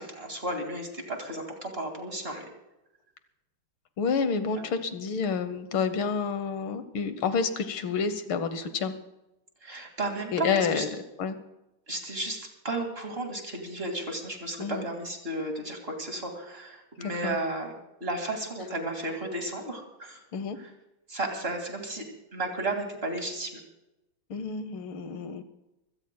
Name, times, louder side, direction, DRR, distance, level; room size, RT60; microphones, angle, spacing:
voice 1, 0.0-2.5 4.6-4.7 9.6-10.9 11.9-17.7 18.0-20.2 20.5-20.7 21.1-22.0 22.3-23.5, right 2 dB, 30° right, 3 dB, 2.3 m, -33 dB
voice 2, 4.0-8.9 10.3-10.9 11.2-11.4 14.6-14.9 17.0-17.4 20.3-20.6 24.3-25.4, left 5 dB, 75° left, 11 dB, 1.8 m, -29 dB
26.0 x 17.0 x 2.2 m, 0.94 s
omnidirectional pair, 2.3 m